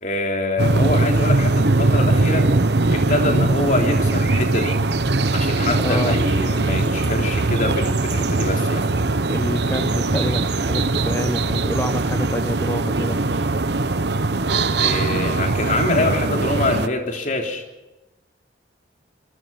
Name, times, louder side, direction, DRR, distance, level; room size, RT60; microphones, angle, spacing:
voice 1, 0.0-2.5 2.9-4.8 5.3-8.9 14.8-17.6, left 2 dB, 40° left, 3 dB, 3.5 m, -25 dB
sound 1, 0.6-16.9, right 2 dB, 60° right, 1.0 m, -20 dB
voice 2, 5.8-6.2 9.3-13.3, left 1 dB, 15° left, 7 dB, 0.9 m, -27 dB
27.0 x 22.0 x 5.7 m, 1.0 s
head